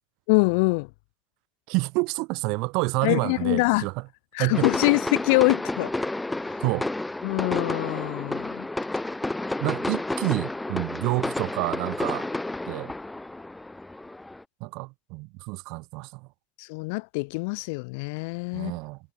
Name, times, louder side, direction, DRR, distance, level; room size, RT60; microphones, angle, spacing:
voice 1, 0.3-0.9 3.0-3.9 4.3-5.9 7.2-8.7 16.6-18.7, left 30 dB, 80° left, 2.6 m, -24 dB
voice 2, 1.7-3.9 4.4-4.7 6.6-6.9 9.6-12.3 12.7-12.9 14.6-16.3 18.5-19.0, right 27 dB, 75° right, 2.7 m, -28 dB
sound 1, 4.5-14.4, left 2 dB, 10° left, 1.5 m, -31 dB
hypercardioid pair, 75°, 0 cm